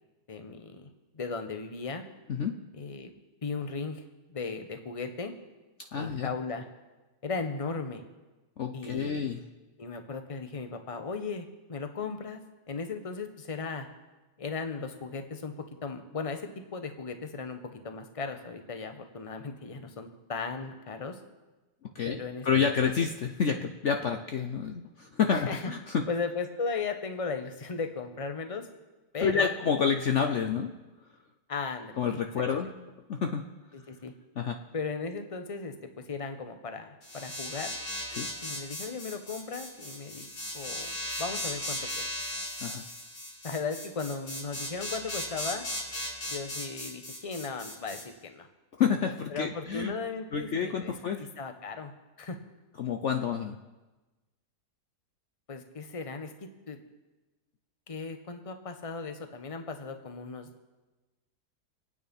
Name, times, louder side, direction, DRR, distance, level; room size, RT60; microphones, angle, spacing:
voice 1, 0.3-2.0 2.7-3.1 3.4-4.0 4.3-5.3 5.9-6.7 7.2-8.0 8.7-9.3 9.8-12.4 12.7-13.9 14.4-15.5 15.8-21.2 22.0-22.6 25.3-25.7 26.1-28.7 29.1-29.5 31.5-32.7 33.7-34.1 34.7-35.7 36.1-37.7 38.4-40.3 40.5-42.0 43.4-45.6 46.3-48.5 49.3-51.9 52.2-52.4 55.5-56.3 56.7-56.8 57.9-60.5, left 4 dB, 25° left, 7 dB, 1.0 m, -36 dB
voice 2, 5.9-6.3 8.6-9.4 21.9-22.2 22.4-26.0 29.2-30.7 32.0-32.7 33.1-33.4 34.4-34.6 38.1-38.3 42.6-42.8 48.8-49.9 50.3-51.2 52.8-53.6, left 6 dB, 55° left, 5 dB, 1.0 m, -28 dB
sound 1, 37.0-48.0, left 1 dB, 85° left, 3.8 m, -37 dB
24.5 x 9.2 x 5.4 m, 1.1 s
omnidirectional pair, 1.7 m